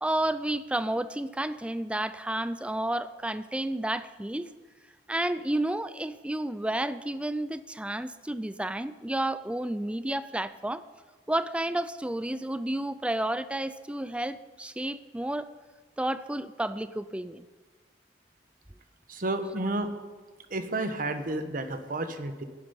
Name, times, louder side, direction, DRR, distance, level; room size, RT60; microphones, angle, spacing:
voice 1, 0.0-4.5 5.1-10.8 11.3-15.5 16.0-17.5, right 1 dB, 5° right, 14 dB, 0.4 m, -31 dB
voice 2, 19.1-19.9 20.5-22.4, right 2 dB, 50° right, 8 dB, 1.1 m, -31 dB
11.0 x 9.0 x 9.7 m, 1.4 s
head